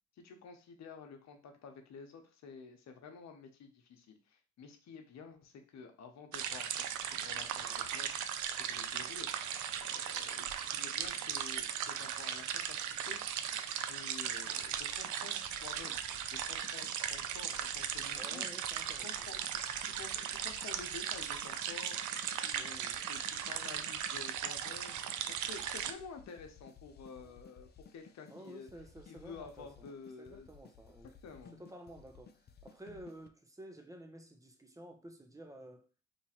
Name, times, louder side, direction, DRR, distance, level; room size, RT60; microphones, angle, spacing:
voice 1, 0.1-6.8 7.0-8.1 8.7-9.3 9.8-13.2 13.9-16.0 16.3-18.5 18.8-19.6 20.0-22.0 22.4-25.0 25.3-28.7 29.1-30.5 31.2-31.6, left 5 dB, 65° left, 0.8 m, -51 dB
sound 1, 6.3-25.9, right 9 dB, 75° right, 0.5 m, -38 dB
sound 2, 14.6-33.3, left 6 dB, 35° left, 0.4 m, -58 dB
voice 2, 18.2-19.3 22.5-23.1 27.2-27.3 28.3-29.9 30.2-31.1 31.5-35.9, right 1 dB, 10° right, 0.7 m, -52 dB
3.0 x 2.4 x 4.2 m
cardioid pair, 90°, 30 cm